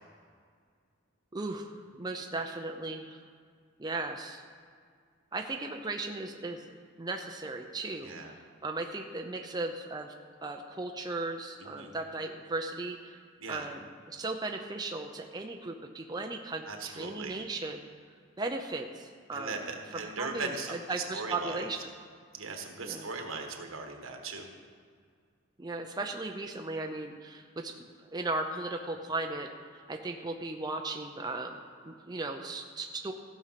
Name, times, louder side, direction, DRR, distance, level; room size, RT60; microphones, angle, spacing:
voice 1, 1.3-3.2 3.8-4.4 5.3-6.7 7.0-10.1 10.4-13.2 13.5-17.8 18.4-19.6 20.2-21.8 22.8-23.1 25.6-29.5 29.9-33.1, right 2 dB, 20° right, 3 dB, 0.5 m, -37 dB
voice 2, 8.0-8.3 11.6-11.9 13.4-13.7 16.7-17.3 19.3-20.8 21.1-21.7 22.3-24.5, right 4 dB, 80° right, 4 dB, 1.4 m, -38 dB
15.0 x 6.5 x 5.8 m, 2.1 s
head